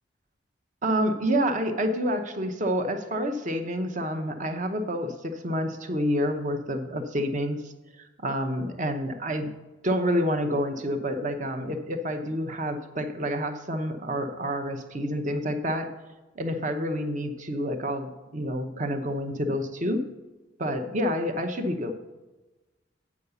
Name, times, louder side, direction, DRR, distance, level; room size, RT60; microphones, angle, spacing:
voice 1, 0.8-7.7 8.0-9.5 9.8-15.9 16.4-20.0 20.6-21.9, equal, 40° right, 6 dB, 0.8 m, -28 dB
8.4 x 4.8 x 6.8 m, 1.1 s
head